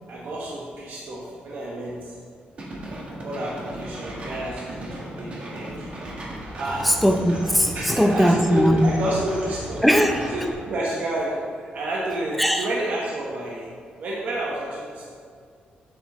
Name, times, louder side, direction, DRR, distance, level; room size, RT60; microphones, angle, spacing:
voice 1, 0.1-2.1 3.1-6.0 6.6-7.0 7.7-9.8 10.3-13.7 14.0-15.0, right 1 dB, 60° right, -5 dB, 1.2 m, -30 dB
sound 1, 2.6-10.5, right 1 dB, 40° right, 1.5 m, -36 dB
voice 2, 6.8-8.9 9.8-10.3 12.4-12.7, equal, ahead, 4 dB, 0.5 m, -19 dB
8.0 x 7.9 x 3.1 m, 2.2 s
cardioid pair, 135°, 3 cm